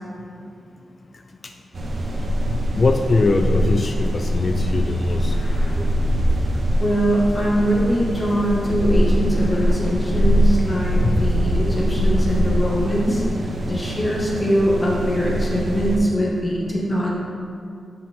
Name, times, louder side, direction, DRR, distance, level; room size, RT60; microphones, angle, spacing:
sound 1, 1.7-16.0, equal, 50° right, 0.9 m, -22 dB
voice 1, 2.2-5.4 11.0-11.3, left 3 dB, 40° left, 5 dB, 0.4 m, -22 dB
sound 2, 5.3-6.7 7.2-10.7 11.2-13.3, left 1 dB, 70° left, 1.4 m, -34 dB
voice 2, 6.8-17.1, equal, 20° left, -4 dB, 1.6 m, -22 dB
7.7 x 5.8 x 3.6 m, 2.4 s
cardioid pair, 90°, 0 cm